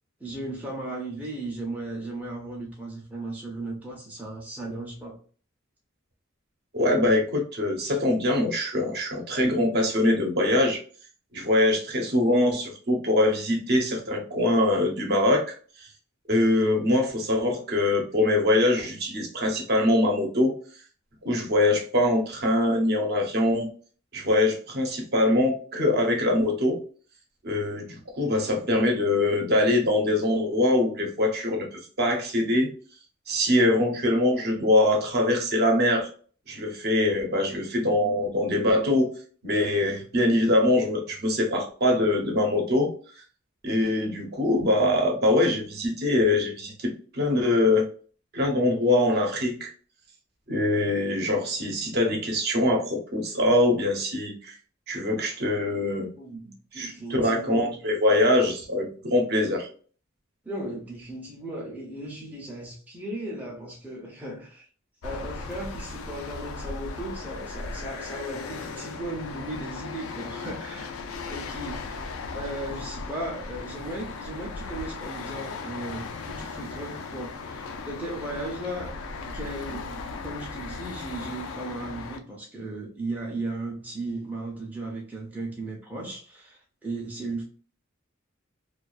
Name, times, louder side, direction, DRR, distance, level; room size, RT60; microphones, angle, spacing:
voice 1, 0.2-5.2 56.2-57.8 60.4-64.7 65.0-70.9 71.3-78.9 79.3-79.9 80.2-87.4, right 2 dB, 10° right, 0.5 m, -36 dB
voice 2, 6.7-10.8 11.3-15.5 16.3-20.5 21.2-23.7 24.1-26.8 27.4-31.7 32.0-32.7 33.3-36.1 36.5-39.1 39.4-42.9 43.6-47.9 48.3-49.7 50.5-54.5 54.9-56.1 56.7-59.7, left 1 dB, 50° right, 0.7 m, -23 dB
sound 1, 65.0-82.2, left 4 dB, 85° left, 0.4 m, -37 dB
2.3 x 2.3 x 2.3 m
head